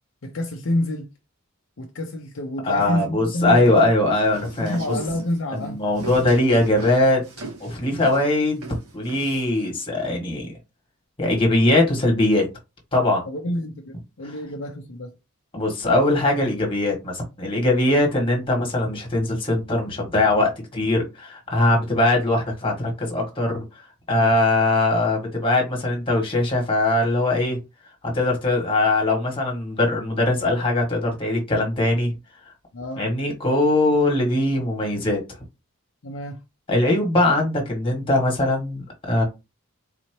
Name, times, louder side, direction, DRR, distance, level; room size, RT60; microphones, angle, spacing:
voice 1, 0.2-1.1 1.8-3.9 4.6-5.8 13.3-15.1 32.7-33.0 36.0-36.4, left 1 dB, 60° left, 0.6 m, -28 dB
voice 2, 2.6-4.8 5.5-7.2 7.6-8.6 8.9-10.5 11.2-12.5 12.9-13.2 15.5-23.6 24.1-27.6 28.0-32.1 33.0-35.2 36.7-39.2, left 2 dB, 25° left, 1.5 m, -21 dB
걷는소리, 4.2-9.6, right 3 dB, 85° right, 1.5 m, -37 dB
4.1 x 2.9 x 3.0 m
head